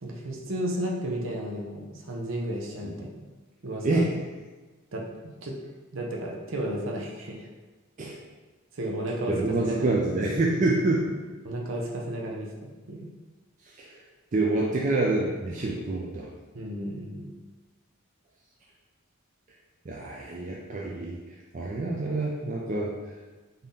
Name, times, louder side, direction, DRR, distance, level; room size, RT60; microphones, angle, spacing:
voice 1, 0.0-3.1 3.6-4.1 4.9-5.0 5.4-5.6 5.9-7.5 8.7-10.0 11.4-12.5 12.9-13.1 16.5-17.3, right 1 dB, 70° right, -1 dB, 0.7 m, -33 dB
voice 2, 3.8-4.2 8.0-8.2 9.2-11.2 13.6-14.0 14.3-16.3 19.8-22.9, right 2 dB, 35° right, -3 dB, 0.4 m, -27 dB
3.7 x 2.7 x 3.5 m, 1.3 s
head